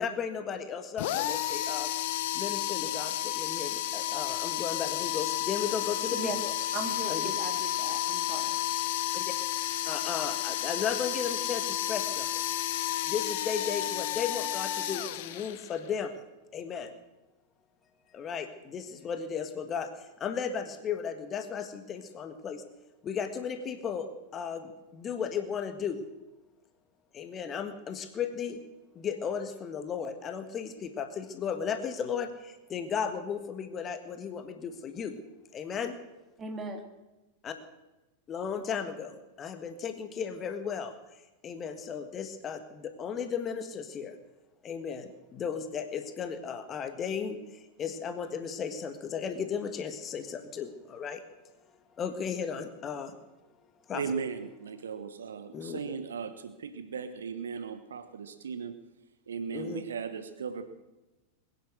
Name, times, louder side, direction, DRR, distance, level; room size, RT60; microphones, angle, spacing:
voice 1, 0.0-1.9 2.3-6.5 7.1-7.3 9.1-9.2 9.8-12.4 13.0-16.1 16.5-16.9 18.1-22.6 23.0-26.0 27.1-28.6 28.9-35.2 35.5-35.9 37.4-37.5 38.3-44.1 44.6-51.2 52.0-53.1 53.9-54.0 55.5-55.8 59.5-59.8, left 7 dB, 25° left, 8 dB, 1.6 m, -35 dB
sound 1, 1.0-15.9, left 13 dB, 50° left, 1.0 m, -32 dB
voice 2, 6.7-8.6 36.4-36.8, right 3 dB, 20° right, 5 dB, 2.5 m, -38 dB
voice 3, 53.9-58.7 59.3-60.6, right 6 dB, 65° right, 10 dB, 1.2 m, -37 dB
21.5 x 10.0 x 6.4 m, 1.0 s
figure-of-eight pair, 90°, 0 cm